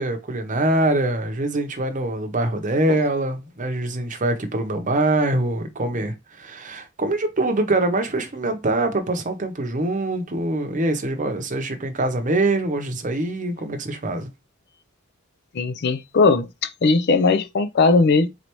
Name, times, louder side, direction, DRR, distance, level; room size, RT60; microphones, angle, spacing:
voice 1, 0.0-14.3, right 2 dB, 40° right, 0.8 m, -24 dB
voice 2, 15.5-18.3, left 3 dB, 55° left, 0.5 m, -18 dB
4.0 x 3.3 x 3.0 m
head